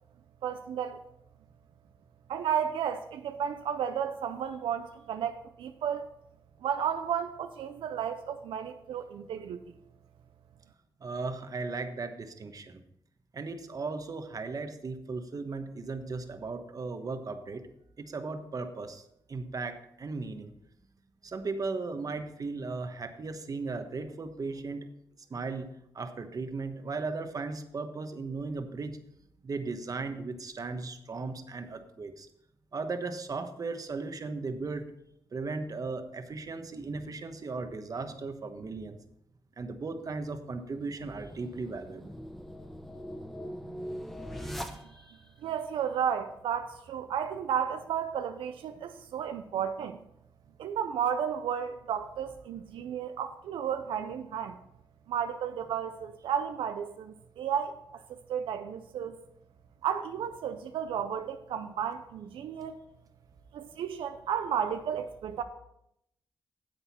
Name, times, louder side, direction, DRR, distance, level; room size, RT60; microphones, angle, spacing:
voice 1, 0.4-1.0 2.3-6.1 6.6-9.8 45.4-50.0 50.6-54.6 55.1-59.2 59.8-62.8 63.5-65.4, right 8 dB, 85° right, 0.5 m, -33 dB
voice 2, 11.0-12.8 13.3-17.6 18.0-20.5 21.2-24.9 25.3-29.0 29.4-32.3 32.7-34.9 35.3-39.0 39.6-42.2 44.4-45.2, right 3 dB, 45° right, 1.1 m, -37 dB
sound 1, 40.7-45.3, equal, 5° left, 1.0 m, -41 dB
10.0 x 7.8 x 4.3 m
cardioid pair, 80°, 9 cm